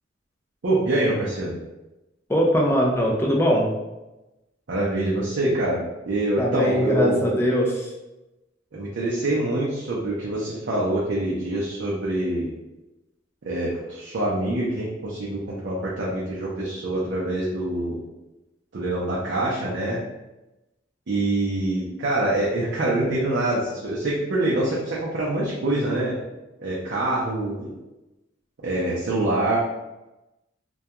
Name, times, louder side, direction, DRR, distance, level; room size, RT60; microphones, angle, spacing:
voice 1, 0.6-1.5 4.7-7.5 8.7-12.5 13.4-18.0 18.7-20.0 21.1-26.2 26.6-27.7 28.6-29.6, right 1 dB, 60° right, -6 dB, 0.5 m, -25 dB
voice 2, 2.3-3.7 6.4-7.9, equal, 15° left, -1 dB, 0.4 m, -21 dB
2.2 x 2.2 x 2.8 m, 1.0 s
head